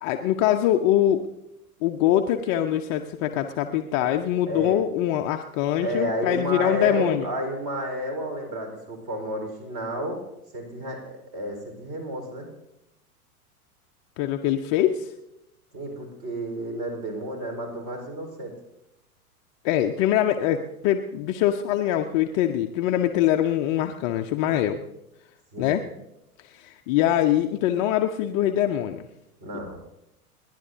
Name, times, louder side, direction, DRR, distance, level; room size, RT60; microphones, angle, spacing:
voice 1, 0.0-1.2 1.8-7.3 14.2-15.1 19.6-24.8 25.6-25.8 26.4-29.0, left 11 dB, 20° left, 4 dB, 0.4 m, -23 dB
voice 2, 5.8-10.2 10.5-12.5 15.7-18.5 25.5-25.7 29.4-29.8, equal, 40° right, 2 dB, 4.4 m, -31 dB
29.5 x 10.5 x 2.7 m, 0.87 s
figure-of-eight pair, 95°, 44 cm